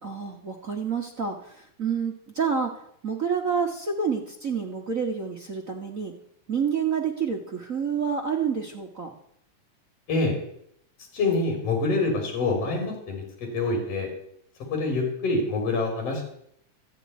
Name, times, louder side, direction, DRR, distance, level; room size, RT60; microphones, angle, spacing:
voice 1, 0.0-6.1 6.5-9.1, right 6 dB, 50° right, 1 dB, 0.9 m, -28 dB
voice 2, 11.1-14.1 14.7-16.3, left 3 dB, 50° left, 2 dB, 4.3 m, -26 dB
14.0 x 6.9 x 9.5 m, 0.71 s
omnidirectional pair, 3.6 m